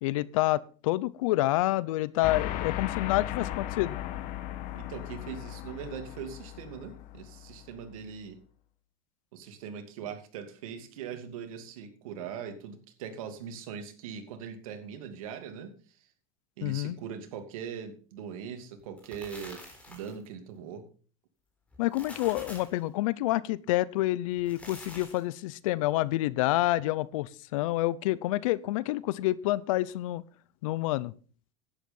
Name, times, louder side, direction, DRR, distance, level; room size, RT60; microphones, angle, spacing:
voice 1, 0.0-3.9 16.6-17.0 21.8-30.2 30.6-31.1, left 17 dB, 75° left, 21 dB, 0.7 m, -28 dB
sound 1, 2.2-8.0, left 13 dB, 50° left, 1.6 m, -37 dB
voice 2, 4.7-8.4 9.3-16.0 16.6-19.6 19.9-20.9, right 7 dB, 85° right, 7 dB, 2.6 m, -41 dB
sound 2, 18.8-20.3 21.7-22.8 24.3-25.3, left 1 dB, 5° left, 3.8 m, -47 dB
11.0 x 9.3 x 5.5 m, 0.40 s
supercardioid pair, 140°, 17 cm